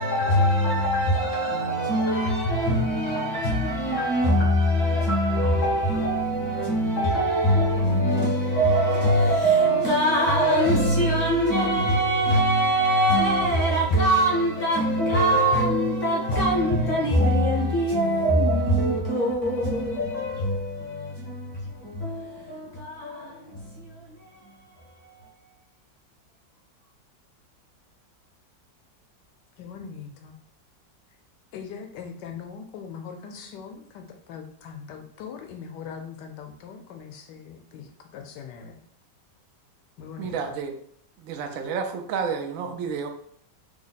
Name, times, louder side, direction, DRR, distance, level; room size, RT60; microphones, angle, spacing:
voice 1, 0.0-25.3, right 1 dB, 55° left, 0.9 m, -23 dB
voice 2, 29.6-30.4 31.5-38.8 40.0-40.5, left 6 dB, 75° left, 1.1 m, -41 dB
voice 3, 40.2-40.8 41.2-43.1, right 6 dB, 85° right, 0.7 m, -30 dB
3.3 x 2.1 x 3.9 m
omnidirectional pair, 2.0 m